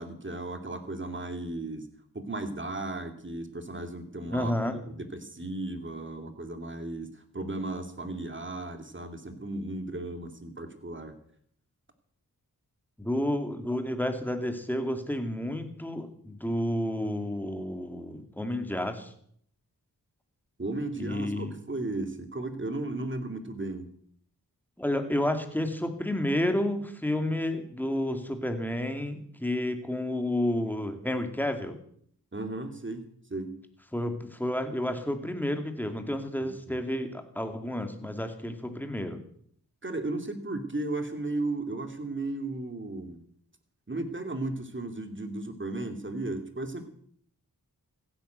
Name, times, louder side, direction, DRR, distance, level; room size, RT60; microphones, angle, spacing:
voice 1, 0.0-1.9 2.1-11.2 20.6-23.9 32.3-33.0 33.3-33.5 36.4-36.8 39.8-43.2 43.9-46.9, right 2 dB, 30° right, 7 dB, 2.5 m, -35 dB
voice 2, 4.3-4.8 13.0-19.1 21.0-21.6 24.8-31.8 33.9-39.2, left 1 dB, 5° left, 6 dB, 2.5 m, -30 dB
15.5 x 10.0 x 8.0 m, 0.64 s
wide cardioid pair, 55°, 36 cm